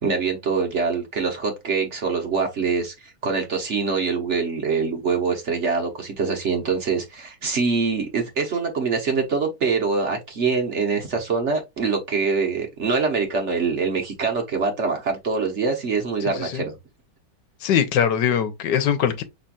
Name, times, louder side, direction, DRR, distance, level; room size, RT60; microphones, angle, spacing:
voice 1, 0.0-16.7, right 4 dB, 50° right, 1.1 m, -24 dB
voice 2, 17.6-19.2, left 8 dB, 85° left, 1.4 m, -21 dB
5.6 x 3.4 x 2.4 m
omnidirectional pair, 1.9 m